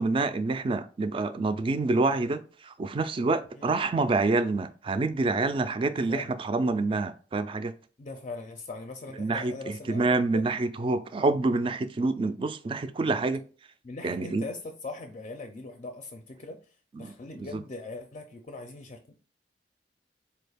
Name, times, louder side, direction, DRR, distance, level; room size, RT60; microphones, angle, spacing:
voice 1, 0.0-7.7 9.2-13.4 14.0-14.4 16.9-17.1 17.4-17.6, right 3 dB, 30° right, 0.3 m, -27 dB
voice 2, 5.9-6.3 8.0-10.5 13.8-16.6 17.0-19.2, left 3 dB, 35° left, 0.4 m, -41 dB
4.1 x 2.3 x 3.4 m
head